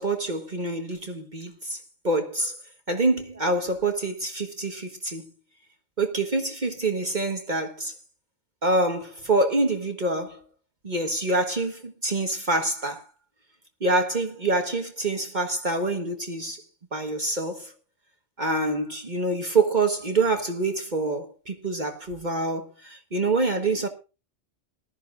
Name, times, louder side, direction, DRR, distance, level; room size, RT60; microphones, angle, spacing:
voice 1, 0.0-2.6 2.9-5.2 6.0-7.9 8.6-10.4 10.8-13.0 13.8-16.6 16.9-17.7 18.4-23.9, right 2 dB, 40° right, 1.6 m, -26 dB
20.0 x 13.0 x 2.6 m
omnidirectional pair, 1.2 m